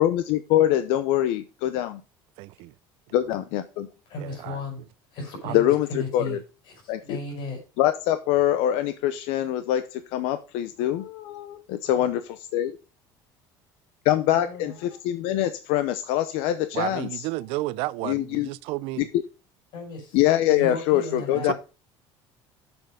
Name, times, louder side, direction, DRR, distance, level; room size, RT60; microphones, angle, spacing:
voice 1, 0.0-2.0 3.1-3.9 5.5-6.4 6.9-7.2 7.8-12.8 14.0-17.2 18.0-18.5 19.0-19.1 20.1-21.5, left 12 dB, 85° left, 0.7 m, -24 dB
voice 2, 2.4-2.7 4.2-4.6 5.4-5.5 16.7-19.1 21.3-21.5, right 19 dB, 75° right, 0.4 m, -32 dB
voice 3, 4.1-4.9 5.1-6.4 6.7-7.6 11.9-12.1 14.3-14.8 19.7-20.2 20.5-21.5, left 2 dB, 55° left, 5.3 m, -35 dB
7.7 x 7.2 x 5.3 m
cardioid pair, 160°, 10 cm